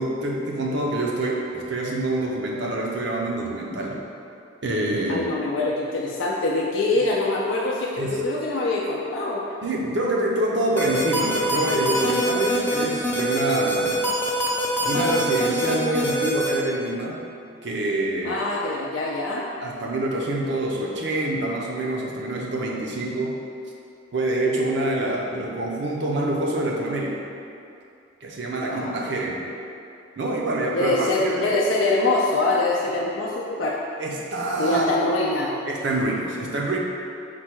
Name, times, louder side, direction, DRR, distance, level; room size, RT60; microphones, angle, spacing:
voice 1, 0.0-4.0 4.6-5.3 8.0-8.2 9.6-14.0 14.8-17.2 17.6-18.4 19.6-23.4 24.1-27.2 28.2-29.4 30.2-31.6 34.0-34.8 35.7-36.8, right 1 dB, 60° right, -2 dB, 0.5 m, -26 dB
voice 2, 5.1-9.4 18.2-19.5 28.6-29.1 30.7-33.8 34.6-35.5, left 2 dB, 70° left, -3 dB, 0.4 m, -24 dB
sound 1, 10.8-16.5, right 1 dB, 10° left, 0.4 m, -24 dB
4.4 x 2.2 x 4.5 m, 2.5 s
head